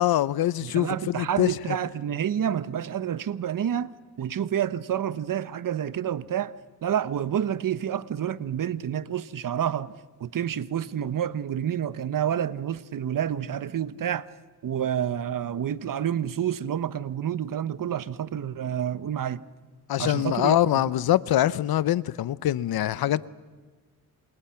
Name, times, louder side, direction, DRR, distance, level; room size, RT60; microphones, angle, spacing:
voice 1, 0.0-1.8 19.9-23.3, left 13 dB, 80° left, 0.8 m, -24 dB
voice 2, 0.6-3.9 4.2-6.5 6.8-9.9 10.2-14.3 14.6-19.4 20.0-20.6, right 9 dB, 60° right, 1.1 m, -28 dB
28.0 x 27.5 x 5.9 m
cardioid pair, 80°, 36 cm